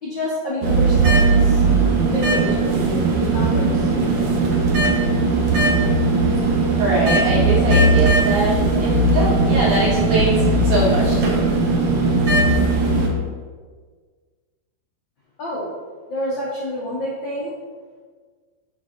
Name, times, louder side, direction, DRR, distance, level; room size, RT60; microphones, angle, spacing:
voice 1, 0.0-1.6 2.0-4.6 15.4-15.7 16.1-17.5, equal, 75° left, -7 dB, 1.0 m, -28 dB
sound 1, 0.6-13.1, right 3 dB, 90° right, 1.2 m, -18 dB
voice 2, 6.8-11.5, right 1 dB, 55° right, -7 dB, 2.7 m, -23 dB
10.0 x 4.3 x 2.6 m, 1.5 s
omnidirectional pair, 3.9 m